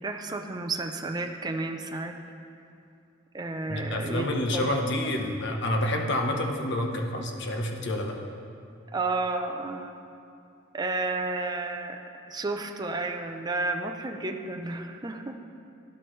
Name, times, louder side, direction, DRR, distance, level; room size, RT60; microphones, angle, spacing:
voice 1, 0.0-2.2 3.3-4.7 8.9-10.0 10.7-12.0 12.3-15.4, right 3 dB, 20° right, 4 dB, 0.5 m, -32 dB
voice 2, 3.7-8.2, left 1 dB, 60° left, 3 dB, 1.0 m, -28 dB
12.5 x 10.5 x 3.2 m, 2.5 s
head